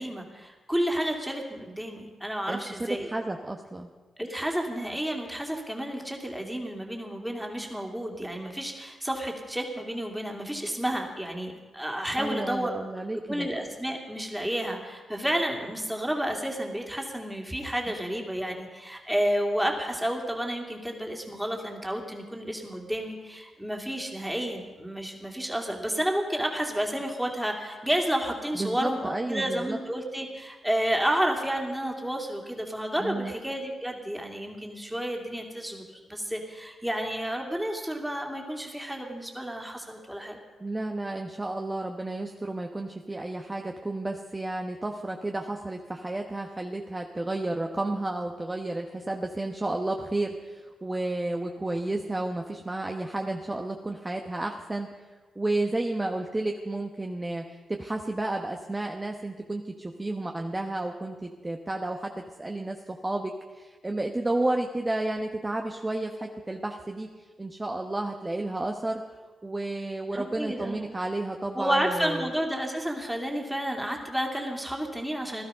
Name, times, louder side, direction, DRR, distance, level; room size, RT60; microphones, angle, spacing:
voice 1, 0.0-3.1 4.2-12.7 13.3-40.4 70.1-70.9 71.5-75.4, equal, 5° right, 1 dB, 2.6 m, -31 dB
voice 2, 2.5-3.9 12.2-13.5 28.5-29.8 33.0-33.3 40.6-54.9 55.4-69.0 69.4-72.3, right 2 dB, 20° right, 3 dB, 1.0 m, -32 dB
16.5 x 12.0 x 5.6 m, 1.3 s
cardioid pair, 65°, 0 cm